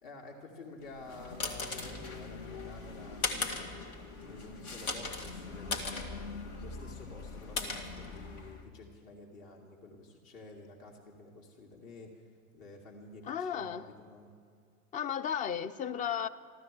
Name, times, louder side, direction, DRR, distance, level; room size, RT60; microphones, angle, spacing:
voice 1, 0.0-3.8 4.2-6.3 6.6-14.3, left 2 dB, 50° left, 0 dB, 2.2 m, -50 dB
sound 1, 0.9-8.6, left 3 dB, 70° left, 2.1 m, -39 dB
voice 2, 13.3-13.9 14.9-16.3, left 8 dB, 20° left, 16 dB, 0.4 m, -34 dB
14.5 x 12.5 x 7.4 m, 2.1 s
hypercardioid pair, 80°, 44 cm